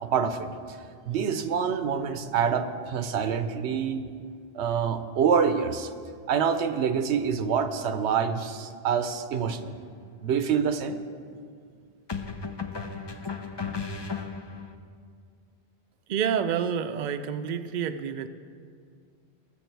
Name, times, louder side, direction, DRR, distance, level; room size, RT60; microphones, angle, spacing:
voice 1, 0.0-0.8 1.1-4.0 4.5-5.9 6.3-9.8 10.2-11.0, right 7 dB, 85° right, 10 dB, 1.0 m, -26 dB
sound 1, 9.4-9.7 12.1-14.8, left 5 dB, 30° left, 0.6 m, -35 dB
voice 2, 16.1-18.3, right 8 dB, 55° right, 9 dB, 0.6 m, -28 dB
20.5 x 7.3 x 4.5 m, 2.2 s
omnidirectional pair, 1.1 m